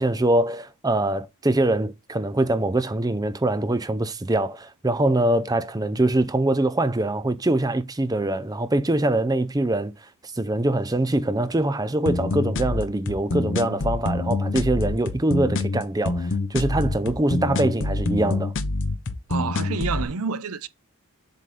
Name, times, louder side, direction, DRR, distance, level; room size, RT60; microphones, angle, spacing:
voice 1, 0.0-9.9 10.3-18.5, right 1 dB, 15° right, 0.6 m, -23 dB
sound 1, 12.1-20.1, left 2 dB, 60° left, 0.8 m, -26 dB
voice 2, 19.3-20.7, right 5 dB, 75° right, 0.7 m, -28 dB
7.6 x 4.0 x 3.3 m
head